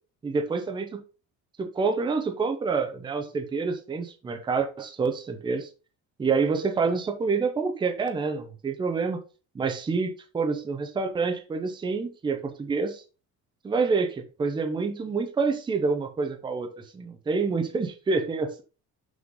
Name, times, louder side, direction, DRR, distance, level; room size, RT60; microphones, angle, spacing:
voice 1, 0.2-1.0 1.6-5.7 6.2-9.2 9.5-13.0 13.6-16.7 16.9-18.6, right 4 dB, 15° right, 6 dB, 0.7 m, -27 dB
6.2 x 5.7 x 3.7 m, 0.34 s
cardioid pair, 180°, 33 cm